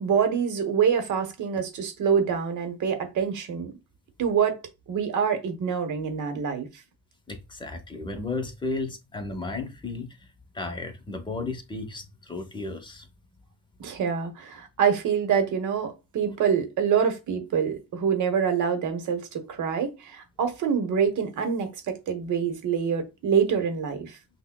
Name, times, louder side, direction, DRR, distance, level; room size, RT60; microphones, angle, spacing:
voice 1, 0.0-3.7 4.2-4.6 4.9-6.7 13.8-24.2, right 7 dB, 55° right, 1.0 m, -26 dB
voice 2, 7.3-10.3 10.5-13.1, left 3 dB, 15° left, 0.8 m, -34 dB
5.5 x 2.2 x 2.2 m
supercardioid pair, 80°, 36 cm